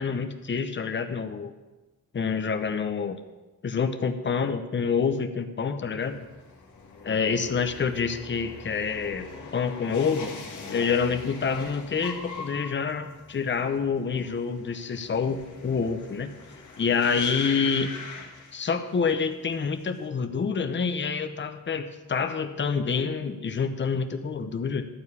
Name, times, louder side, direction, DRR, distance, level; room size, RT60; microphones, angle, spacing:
voice 1, 0.0-1.5 2.1-3.2 3.6-6.2 7.0-10.3 10.7-16.3 16.8-18.0 18.5-24.9, left 5 dB, 35° left, 7 dB, 0.8 m, -27 dB
sound 1, 6.0-19.1 19.4-20.0, left 4 dB, 60° left, 1.7 m, -42 dB
12.5 x 4.6 x 8.4 m, 1.2 s
cardioid pair, 95°, 33 cm